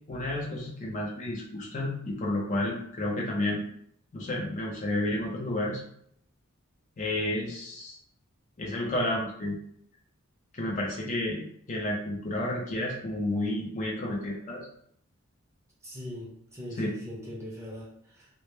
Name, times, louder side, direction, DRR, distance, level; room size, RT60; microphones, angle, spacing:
voice 1, 0.1-3.6 4.1-5.8 7.0-8.0 8.6-9.6 10.5-14.7 16.8-16.9, left 1 dB, 35° left, -2 dB, 0.4 m, -31 dB
voice 2, 15.8-18.3, left 1 dB, 15° right, -5 dB, 0.6 m, -41 dB
2.1 x 2.1 x 3.0 m, 0.68 s
head